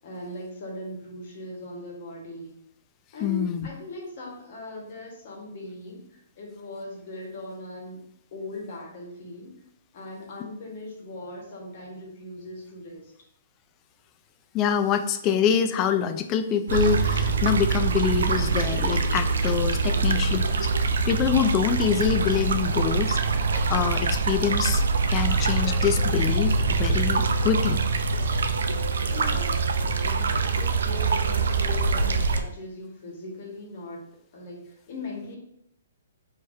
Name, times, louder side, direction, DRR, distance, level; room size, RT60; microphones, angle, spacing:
voice 1, 0.0-2.6 3.1-8.0 8.3-9.5 9.9-13.1 19.8-20.4 29.1-29.6 29.9-34.1 34.3-35.4, left 1 dB, 50° left, -1 dB, 1.4 m, -39 dB
voice 2, 3.2-3.7 14.5-20.7 21.1-23.2 23.5-24.8 25.1-27.8, left 8 dB, 30° left, 9 dB, 0.3 m, -25 dB
sound 1, 16.7-32.4, right 4 dB, 70° right, 0.4 m, -24 dB
4.6 x 3.0 x 2.7 m, 0.73 s
hypercardioid pair, 130°, 0 cm